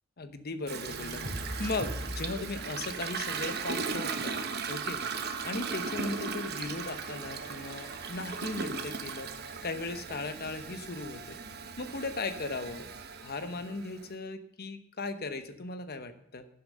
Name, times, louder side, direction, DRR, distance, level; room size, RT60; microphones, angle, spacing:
voice 1, 0.2-1.3 1.6-4.4 4.7-5.0 5.4-11.4 11.8-12.9 13.2-16.5, left 3 dB, 45° left, 10 dB, 1.0 m, -37 dB
Toilet flush, 0.7-14.1, right 5 dB, 50° right, 1.1 m, -37 dB
sound 1, 0.9-4.7 5.0-8.4, equal, 25° right, 4.2 m, -44 dB
16.0 x 7.1 x 6.3 m, 0.75 s
head